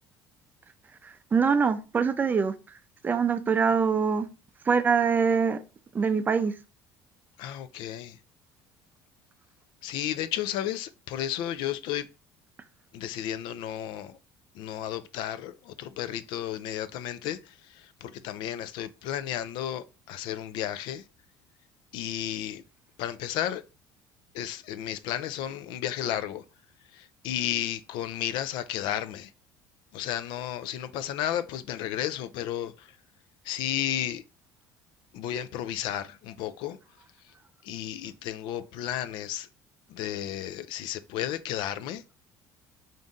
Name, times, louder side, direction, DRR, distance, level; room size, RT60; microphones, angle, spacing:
voice 1, 1.3-2.5 3.0-4.3 4.7-5.6 5.9-6.5, right 6 dB, 20° right, 0.4 m, -23 dB
voice 2, 7.4-8.2 9.8-12.1 12.9-14.2 14.5-21.0 21.9-22.6 23.0-23.6 24.3-26.4 26.9-29.3 29.9-33.0 33.4-34.2 35.1-36.8 37.6-39.5 39.9-42.0, left 11 dB, 70° left, 0.4 m, -33 dB
3.9 x 2.6 x 3.5 m
cardioid pair, 125°, 8 cm